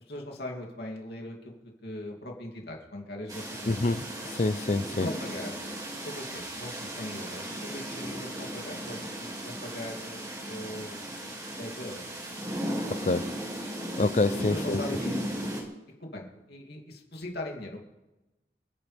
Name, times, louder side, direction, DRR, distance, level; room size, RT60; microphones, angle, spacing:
voice 1, 0.0-1.5 1.8-3.8 5.0-5.7 6.0-11.1 11.5-12.1 14.3-15.2 16.0-17.8, left 1 dB, 60° left, 2.9 m, -40 dB
sound 1, 3.3-15.6, equal, 20° right, 2.5 m, -36 dB
voice 2, 3.7-5.1 12.9-13.3 14.0-14.8, left 2 dB, 40° left, 0.5 m, -27 dB
27.5 x 10.5 x 3.5 m
head